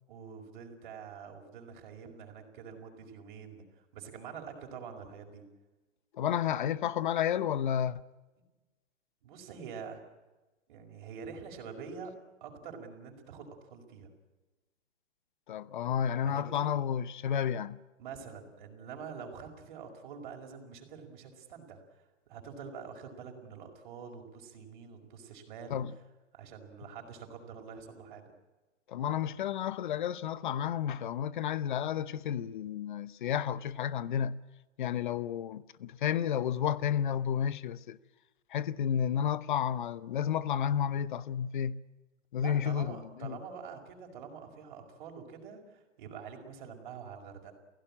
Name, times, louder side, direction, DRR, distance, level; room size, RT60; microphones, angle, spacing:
voice 1, 0.1-5.4 9.2-10.0 10.7-12.1 12.4-14.1 16.2-16.7 18.0-25.8 26.3-28.3 42.4-47.6, right 6 dB, 40° right, 5.2 m, -46 dB
voice 2, 6.1-8.0 15.5-17.8 25.7-25.9 28.9-34.4 34.8-38.0 38.5-41.8 42.3-43.4, left 9 dB, 40° left, 0.9 m, -31 dB
28.5 x 17.0 x 8.8 m
hypercardioid pair, 165°, 38 cm